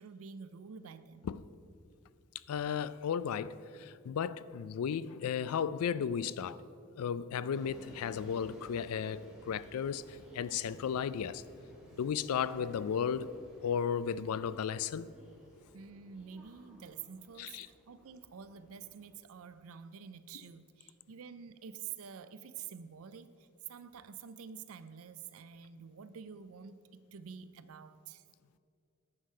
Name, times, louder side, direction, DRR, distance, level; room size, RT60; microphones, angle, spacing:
voice 1, 0.0-1.3 15.7-28.2, right 7 dB, 80° right, 0.4 m, -48 dB
voice 2, 2.5-6.6 7.0-11.4 12.0-13.3 13.6-15.1 17.4-17.7, left 7 dB, 90° left, 0.3 m, -34 dB
sound 1, 7.5-19.1, equal, 5° right, 1.6 m, -57 dB
9.7 x 6.5 x 5.5 m
head